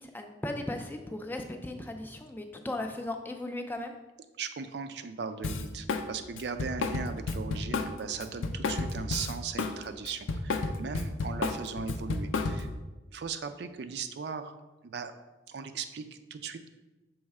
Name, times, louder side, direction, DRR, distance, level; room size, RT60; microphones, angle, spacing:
voice 1, 0.0-3.9, left 1 dB, 10° left, 5 dB, 0.3 m, -37 dB
voice 2, 4.4-12.7 13.1-14.5 14.8-15.1 15.5-16.7, right 5 dB, 60° right, 9 dB, 0.4 m, -38 dB
Drum kit, 5.4-6.1 6.4-9.8 10.0-12.8, left 3 dB, 90° left, 0.5 m, -31 dB
6.3 x 3.1 x 4.7 m, 1.1 s
head